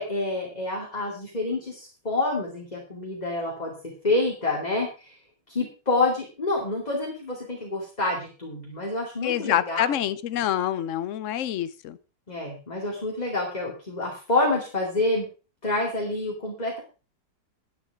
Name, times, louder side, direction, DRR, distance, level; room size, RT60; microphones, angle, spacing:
voice 1, 0.0-5.1 5.5-9.8 12.3-15.3 15.6-16.8, left 2 dB, 20° left, -1 dB, 2.6 m, -28 dB
voice 2, 9.2-12.0, left 11 dB, 60° left, 15 dB, 0.9 m, -26 dB
11.0 x 10.5 x 4.7 m, 0.34 s
omnidirectional pair, 1.9 m